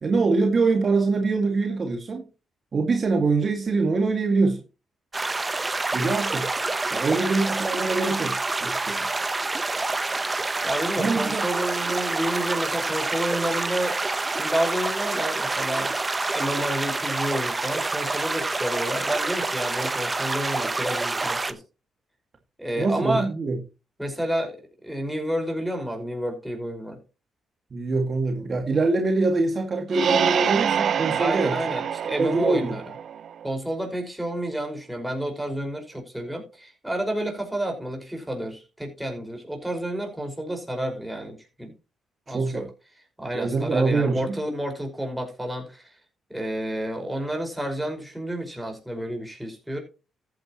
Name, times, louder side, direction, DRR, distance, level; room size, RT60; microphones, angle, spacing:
voice 1, 0.0-2.2 2.7-4.6 5.9-6.5 6.9-9.1 11.0-11.4 22.8-23.6 27.7-31.6 32.1-32.8 42.3-42.7 43.3-44.4, right 3 dB, 45° right, 2.1 m, -24 dB
sound 1, 5.1-21.5, right 3 dB, 25° right, 1.1 m, -27 dB
voice 2, 10.6-14.0 14.3-15.9 16.3-21.6 22.6-23.3 24.0-24.6 24.8-27.0 31.2-32.9 33.4-41.7 42.3-42.6 43.2-46.0 46.3-49.8, right 1 dB, 5° right, 5.3 m, -30 dB
sound 2, 29.9-33.5, right 8 dB, 65° right, 0.5 m, -26 dB
14.0 x 9.2 x 3.1 m
cardioid pair, 75°, 0 cm